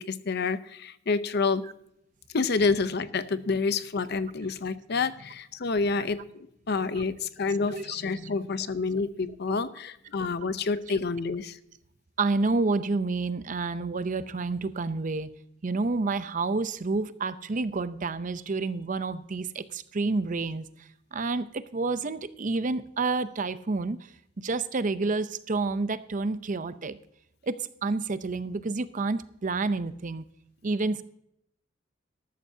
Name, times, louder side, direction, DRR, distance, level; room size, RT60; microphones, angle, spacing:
voice 1, 0.0-1.6 2.3-6.2 6.7-11.6, left 4 dB, 55° left, 13 dB, 0.7 m, -28 dB
voice 2, 12.2-15.3 15.6-24.1 24.4-27.0 27.4-30.2 30.6-31.0, right 3 dB, 40° right, 13 dB, 0.6 m, -29 dB
13.5 x 13.0 x 2.7 m, 0.75 s
head